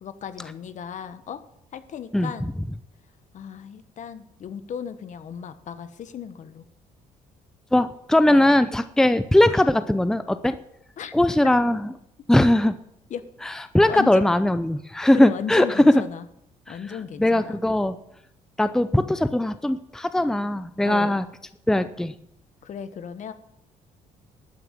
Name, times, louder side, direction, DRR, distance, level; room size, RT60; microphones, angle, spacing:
voice 1, 0.0-1.4 1.7-2.5 3.3-6.6 8.2-8.5 11.0-11.1 11.4-11.5 13.1-13.3 13.9-14.2 15.1-16.3 16.7-17.6 20.8-21.1 22.6-23.3, left 8 dB, 55° left, 12 dB, 1.2 m, -35 dB
voice 2, 7.7-10.6 11.1-11.9 12.3-12.8 13.4-15.7 16.7-16.8 17.2-18.0 18.6-21.2 21.7-22.1, left 1 dB, 5° left, 12 dB, 0.6 m, -20 dB
13.0 x 9.3 x 7.4 m, 0.78 s
cardioid pair, 90°, 15 cm